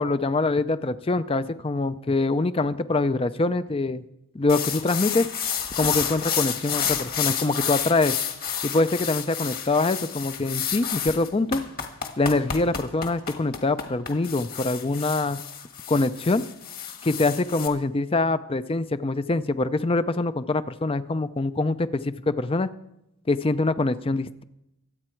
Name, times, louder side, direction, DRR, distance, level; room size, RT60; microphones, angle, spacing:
voice 1, 0.0-4.0 4.3-5.3 5.8-8.2 8.6-11.6 12.2-15.4 15.9-16.4 17.0-22.7 23.3-24.4, left 2 dB, 25° left, 13 dB, 0.5 m, -24 dB
sound 1, 4.5-17.7, left 8 dB, 40° left, 1.5 m, -30 dB
24.0 x 8.7 x 4.5 m, 0.87 s
head